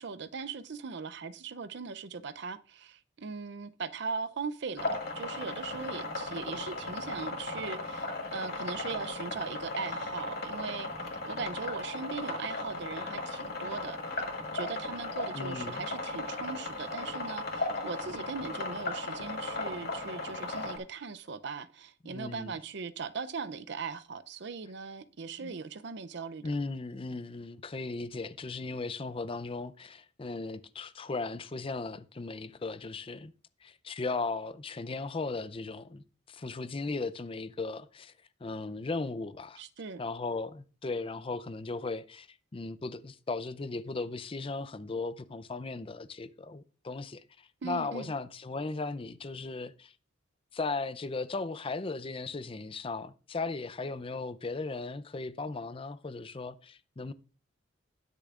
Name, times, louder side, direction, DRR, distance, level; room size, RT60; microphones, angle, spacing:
voice 1, 0.0-14.2 14.5-26.4 39.6-40.0 47.6-48.2, right 5 dB, 60° right, 0.5 m, -39 dB
sound 1, 4.8-20.8, left 2 dB, 55° left, 2.2 m, -36 dB
voice 2, 15.3-15.9 22.0-22.6 25.4-25.6 26.4-33.3 33.6-38.1 38.4-39.6 40.0-49.9 50.5-57.1, left 3 dB, 30° left, 0.5 m, -37 dB
20.0 x 6.7 x 2.5 m
head